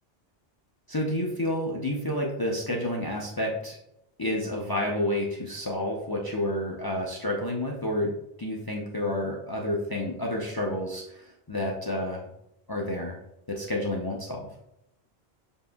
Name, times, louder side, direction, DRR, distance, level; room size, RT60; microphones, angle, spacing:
voice 1, 0.9-3.8 4.2-12.2 12.7-13.2 13.5-14.5, left 1 dB, 35° left, -2 dB, 0.3 m, -30 dB
7.0 x 2.6 x 2.2 m, 0.82 s
omnidirectional pair, 1.1 m